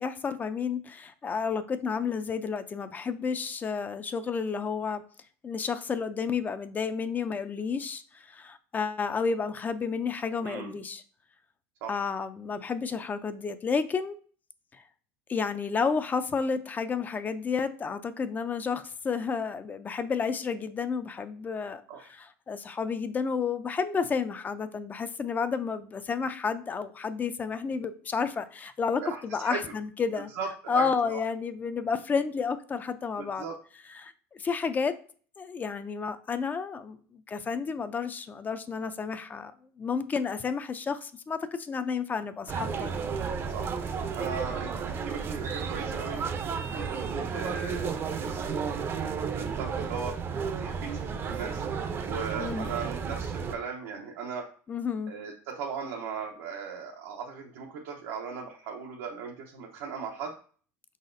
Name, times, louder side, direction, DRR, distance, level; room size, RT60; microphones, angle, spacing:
voice 1, 0.0-5.0 5.4-11.0 11.9-14.2 14.7-14.8 15.3-21.8 22.1-30.3 30.7-33.4 34.0-35.0 35.4-39.5 39.8-43.0 52.4-52.7 54.7-55.1, left 5 dB, 25° left, 11 dB, 0.4 m, -31 dB
voice 2, 10.4-10.7 11.8-12.0 21.9-22.1 29.0-29.6 30.2-31.2 33.2-33.5 43.5-43.9 44.1-46.2 46.7-50.2 50.6-50.9 51.3-51.6 52.0-54.5 55.1-60.4, right 6 dB, 85° right, -1 dB, 0.8 m, -38 dB
sound 1, 42.5-53.5, right 6 dB, 35° right, 0.5 m, -33 dB
4.8 x 4.0 x 2.5 m, 0.43 s
supercardioid pair, 115°, 7 cm